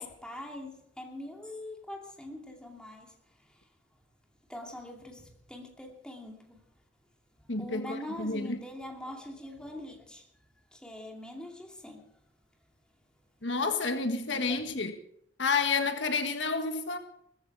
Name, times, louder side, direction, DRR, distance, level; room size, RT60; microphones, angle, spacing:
voice 1, 0.0-3.1 3.5-3.7 4.5-6.7 7.6-10.2 10.7-12.1 14.3-14.8, left 1 dB, 5° left, 2.7 m, -43 dB
voice 2, 7.5-8.6 13.4-14.9 15.4-17.0, left 4 dB, 75° left, 1.6 m, -30 dB
19.0 x 14.5 x 4.8 m
head